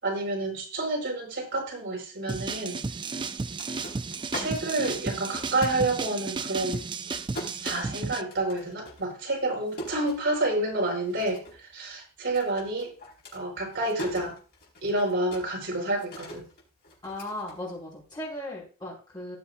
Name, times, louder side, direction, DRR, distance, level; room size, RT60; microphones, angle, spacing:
voice 1, 0.0-2.8 4.3-6.8 7.6-12.9 13.3-14.4 14.8-16.4, right 2 dB, 55° right, -1 dB, 4.7 m, -29 dB
sound 1, 2.3-8.2, right 4 dB, 20° right, 0.3 m, -33 dB
sound 2, 3.4-6.3 6.6-10.7 11.1-11.7 11.9-18.2, left 1 dB, 45° left, 4.6 m, -42 dB
voice 2, 17.0-19.4, left 1 dB, 20° left, -5 dB, 5.5 m, -37 dB
18.5 x 7.0 x 2.6 m, 0.37 s
head